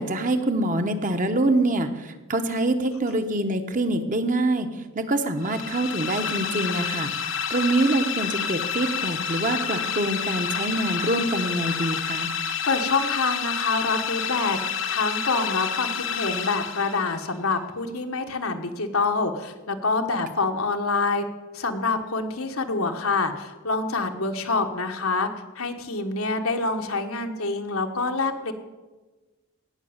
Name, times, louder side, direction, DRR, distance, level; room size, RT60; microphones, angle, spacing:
voice 1, 0.0-4.7 4.9-12.3, right 2 dB, 35° right, 7 dB, 1.0 m, -25 dB
sound 1, 5.4-17.3, left 7 dB, 60° left, 1.1 m, -29 dB
voice 2, 12.7-14.6 14.9-21.2 21.5-25.3 25.5-28.5, left 3 dB, 80° left, 5 dB, 1.4 m, -26 dB
17.5 x 6.1 x 8.8 m, 1.2 s
head